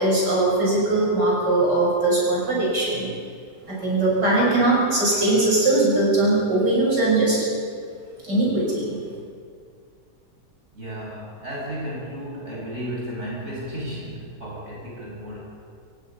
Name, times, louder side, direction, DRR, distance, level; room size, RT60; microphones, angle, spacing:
voice 1, 0.0-3.1 3.7-7.4 8.2-9.0, right 2 dB, 75° right, -4 dB, 7.0 m, -20 dB
voice 2, 10.7-15.4, equal, 40° right, -4 dB, 6.6 m, -33 dB
29.0 x 17.0 x 5.7 m, 2.3 s
omnidirectional pair, 1.9 m